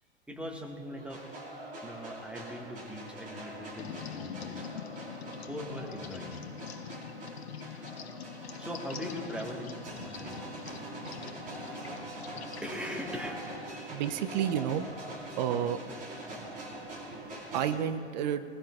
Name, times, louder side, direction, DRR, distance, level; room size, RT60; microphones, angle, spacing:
voice 1, 0.3-1.3 1.8-4.7 5.3-6.4 8.2-10.4 10.9-11.0 11.4-12.1 12.6-13.5, left 1 dB, 5° right, 0 dB, 1.5 m, -41 dB
sound 1, 1.0-17.8, right 1 dB, 25° right, 3.9 m, -44 dB
sound 2, 3.8-13.6, left 7 dB, 65° left, 0.8 m, -44 dB
voice 2, 13.9-14.8 15.4-15.8 17.5-18.4, right 9 dB, 40° right, 11 dB, 0.6 m, -30 dB
20.5 x 20.0 x 2.4 m, 2.5 s
figure-of-eight pair, 95°, 34 cm